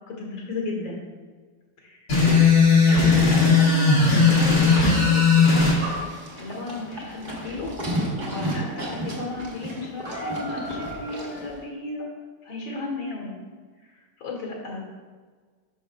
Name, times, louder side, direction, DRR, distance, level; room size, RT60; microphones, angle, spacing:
voice 1, 0.1-1.0 1.8-1.9 2.9-5.7 6.3-7.7 8.3-12.1 12.4-13.3 14.2-14.8, left 3 dB, 80° left, -1 dB, 2.4 m, -33 dB
sound 1, 2.1-5.8, left 4 dB, 55° left, 2.5 m, -17 dB
Livestock farm animals working animals, 5.8-11.5, right 1 dB, 30° right, 1.1 m, -32 dB
10.0 x 5.9 x 2.2 m, 1.5 s
omnidirectional pair, 2.2 m